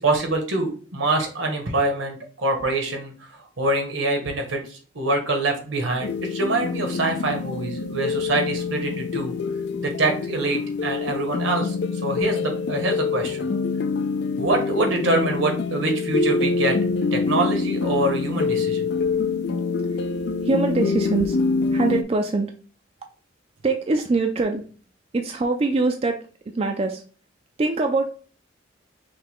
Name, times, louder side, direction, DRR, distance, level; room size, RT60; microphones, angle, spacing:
voice 1, 0.0-9.3 9.8-11.7 12.0-13.5 14.4-16.8 17.1-18.8, right 2 dB, 80° right, 3 dB, 1.3 m, -25 dB
sound 1, 6.0-22.0, left 4 dB, 60° left, 0.4 m, -25 dB
voice 2, 20.4-21.4 21.7-22.5 23.6-24.7 25.1-27.0 27.6-28.1, right 3 dB, 30° right, 4 dB, 0.4 m, -23 dB
5.7 x 2.2 x 3.5 m, 0.40 s
head